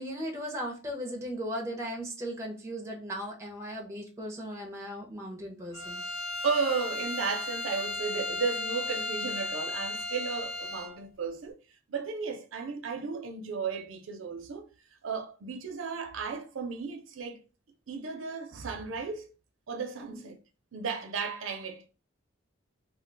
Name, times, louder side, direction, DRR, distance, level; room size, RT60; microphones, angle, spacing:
voice 1, 0.0-6.0 20.1-20.3, equal, 15° right, 0.5 m, -37 dB
Bowed string instrument, 5.7-11.0, left 2 dB, 70° left, 1.0 m, -35 dB
voice 2, 6.4-11.6 11.9-14.6 15.0-17.4 17.9-19.3 19.7-20.4 20.7-21.9, right 5 dB, 80° right, 0.5 m, -34 dB
2.3 x 2.2 x 3.8 m
head